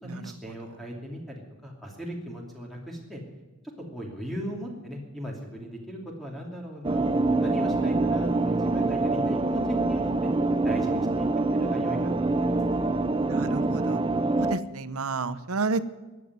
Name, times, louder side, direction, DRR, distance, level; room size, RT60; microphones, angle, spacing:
voice 1, 0.0-3.2 3.9-9.6 9.9-10.3 10.6-12.6, equal, ahead, -1 dB, 2.8 m, -38 dB
sound 1, 6.8-14.6, right 2 dB, 25° right, 0.5 m, -25 dB
voice 2, 13.3-14.0 14.4-15.8, right 3 dB, 80° right, 14 dB, 0.9 m, -30 dB
14.5 x 9.9 x 9.4 m, 1.2 s
head